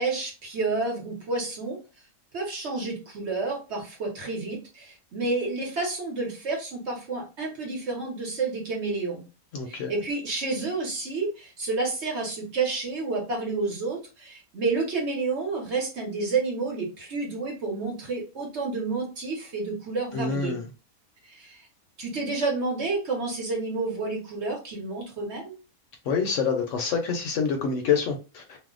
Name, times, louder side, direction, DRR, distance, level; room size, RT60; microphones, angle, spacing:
voice 1, 0.0-1.8 2.3-9.2 9.7-20.6 21.2-21.7 22.0-25.5, right 3 dB, 55° right, -1 dB, 1.1 m, -30 dB
voice 2, 9.5-9.9 20.1-20.6 26.1-28.6, left 5 dB, 65° left, 3 dB, 0.8 m, -26 dB
2.6 x 2.1 x 3.6 m, 0.32 s
omnidirectional pair, 1.5 m